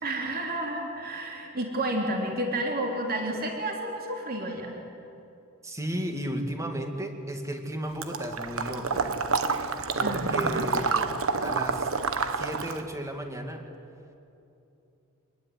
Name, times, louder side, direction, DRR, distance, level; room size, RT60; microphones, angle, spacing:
voice 1, 0.0-4.7 10.0-10.7, right 1 dB, 45° right, 1 dB, 3.6 m, -31 dB
voice 2, 5.6-9.1 10.0-11.1 11.4-11.9 12.4-13.6, equal, 15° right, 4 dB, 2.5 m, -34 dB
Water / Liquid, 8.0-12.9, right 4 dB, 65° right, 1.3 m, -28 dB
26.0 x 20.5 x 9.8 m, 2.8 s
head